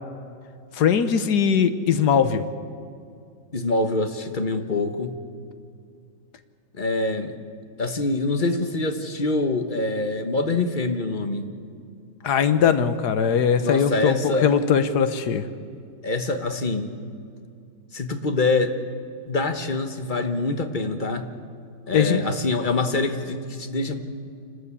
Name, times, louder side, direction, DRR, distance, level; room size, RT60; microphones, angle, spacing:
voice 1, 0.7-2.4 12.2-15.4 21.9-22.2, left 7 dB, 65° left, 11 dB, 1.4 m, -20 dB
voice 2, 3.5-5.1 6.7-7.3 7.8-11.5 13.6-14.5 16.0-16.9 17.9-18.7 19.3-21.3 21.9-23.9, left 2 dB, 30° left, 7 dB, 1.1 m, -25 dB
27.0 x 13.0 x 8.3 m, 2.3 s
omnidirectional pair, 1.9 m